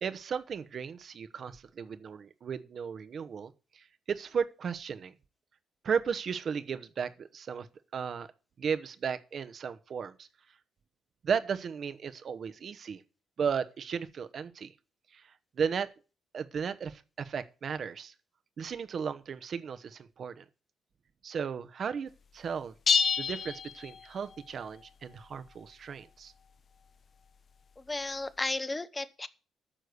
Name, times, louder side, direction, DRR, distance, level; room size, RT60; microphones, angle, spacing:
voice 1, 0.0-5.1 5.8-7.7 7.9-8.3 8.6-10.3 11.2-13.0 13.4-14.7 15.1-15.2 15.6-15.9 16.3-18.1 18.6-20.4 21.2-22.7 23.2-26.3, right 6 dB, 55° right, 1.0 m, -35 dB
sound 1, 22.9-24.4, left 6 dB, 45° left, 0.7 m, -28 dB
voice 2, 27.8-29.3, left 2 dB, 20° left, 0.9 m, -34 dB
10.0 x 6.5 x 7.9 m
cardioid pair, 90°, 0 cm